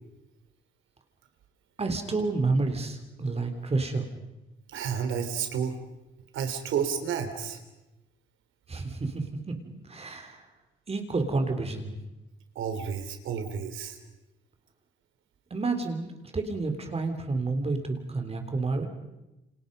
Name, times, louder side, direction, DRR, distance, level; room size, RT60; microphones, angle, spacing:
voice 1, 1.8-4.1 8.7-9.6 9.8-10.4 10.9-11.9 15.5-18.9, right 3 dB, 30° right, 5 dB, 3.5 m, -29 dB
voice 2, 4.7-5.8 6.3-7.6 12.6-14.0, right 7 dB, 80° right, 7 dB, 3.5 m, -31 dB
29.0 x 26.5 x 5.4 m, 0.98 s
cardioid pair, 90°, 20 cm